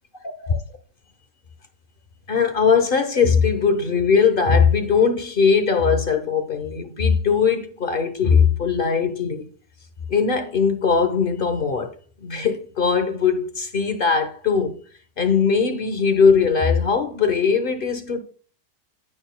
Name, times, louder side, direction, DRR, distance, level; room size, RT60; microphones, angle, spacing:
voice 1, 0.2-0.6 2.3-9.5 10.1-11.9 12.2-14.7 15.2-18.2, left 5 dB, 40° left, 0.9 m, -20 dB
10.0 x 8.8 x 2.2 m
omnidirectional pair, 1.9 m